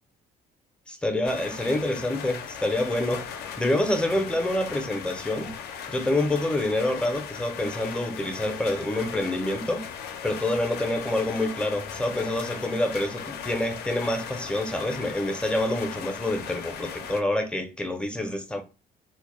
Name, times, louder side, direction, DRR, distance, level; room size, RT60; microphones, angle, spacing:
voice 1, 0.9-3.3 3.6-5.5 5.9-9.8 10.2-18.6, left 1 dB, 5° left, 0.4 m, -27 dB
sound 1, 1.2-17.2, left 7 dB, 70° left, 0.4 m, -38 dB
2.1 x 2.0 x 3.0 m
cardioid pair, 110°, 17 cm